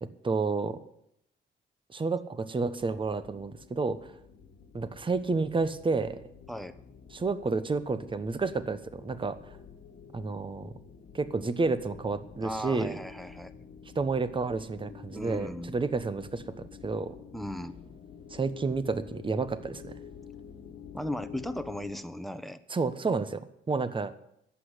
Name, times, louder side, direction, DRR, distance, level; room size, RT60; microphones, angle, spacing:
voice 1, 0.0-0.8 1.9-4.1 4.7-6.2 7.1-9.4 10.1-10.7 11.1-13.0 13.9-17.1 18.3-19.9 22.7-24.1, right 4 dB, 25° right, 12 dB, 1.1 m, -30 dB
sound 1, 2.8-21.9, left 6 dB, 60° left, 1.5 m, -49 dB
voice 2, 12.4-13.7 15.1-15.7 17.3-17.7 20.9-22.6, left 1 dB, ahead, 9 dB, 1.1 m, -37 dB
11.5 x 8.2 x 9.8 m, 0.76 s
cardioid pair, 90°, 20 cm